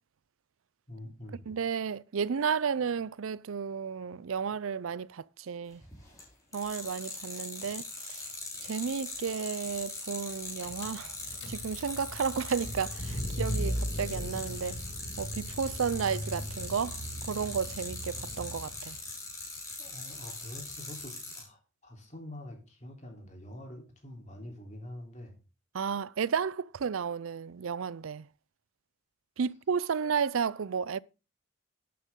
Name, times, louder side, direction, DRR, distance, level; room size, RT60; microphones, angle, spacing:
voice 1, 0.9-1.5 19.8-25.4, left 1 dB, 35° left, 3.6 m, -46 dB
voice 2, 1.5-5.8 6.5-7.8 8.1-8.3 8.6-11.2 11.5-14.8 15.2-17.0 17.3-19.0 25.7-28.3 29.4-31.0, right 6 dB, 85° right, 0.5 m, -32 dB
sound 1, 5.8-6.2 6.5-21.4, left 3 dB, 15° left, 5.8 m, -41 dB
Car / Engine, 10.3-10.4 10.6-19.0, equal, 55° left, 1.9 m, -38 dB
13.0 x 9.4 x 3.7 m
head